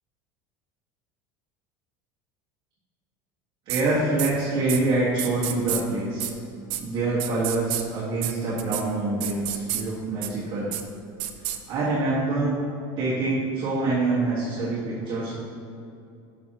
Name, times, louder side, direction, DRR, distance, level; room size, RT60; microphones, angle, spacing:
voice 1, 3.6-6.3 6.8-10.7 11.7-12.5 13.0-15.3, right 2 dB, 40° right, -8 dB, 1.7 m, -25 dB
sound 1, 3.7-3.8 4.2-4.3 4.7-4.8 5.2-5.8 6.2-6.3 6.7-6.8 7.2-7.8 8.2-8.3 8.6-8.8 9.2-9.8 10.2-10.3 10.7-10.8 11.2-11.6, right 14 dB, 65° right, 0.6 m, -29 dB
11.0 x 6.3 x 3.0 m, 2.6 s
cardioid pair, 155°, 11 cm